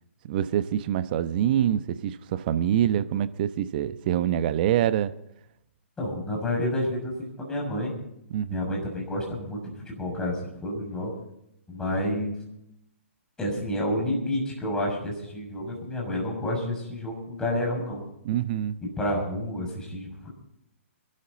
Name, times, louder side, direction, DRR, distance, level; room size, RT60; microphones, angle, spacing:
voice 1, 0.2-5.1 8.3-8.7 18.2-18.8, right 10 dB, 45° right, 13 dB, 1.0 m, -25 dB
voice 2, 6.0-7.1 7.4-7.9 8.5-11.1 11.7-12.3 13.4-18.0 19.0-20.3, left 1 dB, 10° left, -1 dB, 6.4 m, -29 dB
27.0 x 12.0 x 4.1 m, 0.80 s
figure-of-eight pair, 130°, 7 cm